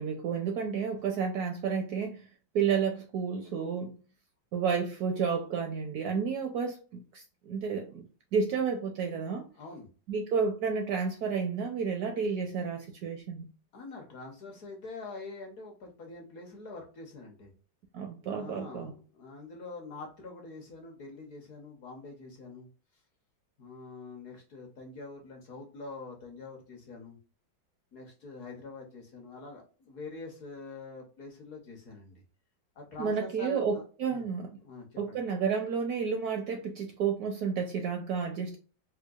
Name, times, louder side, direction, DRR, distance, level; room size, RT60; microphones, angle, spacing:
voice 1, 0.0-2.2 2.5-3.9 4.5-6.8 7.1-8.1 8.3-9.5 10.1-13.5 17.9-18.9 33.0-34.5 35.0-38.6, right 6 dB, 75° right, 0.9 m, -31 dB
voice 2, 9.5-9.9 13.7-17.5 18.3-22.7 23.6-27.2 27.9-32.2 32.7-33.8 34.1-34.2 34.6-35.2, left 3 dB, 60° left, 1.1 m, -45 dB
4.5 x 2.2 x 2.3 m
omnidirectional pair, 2.0 m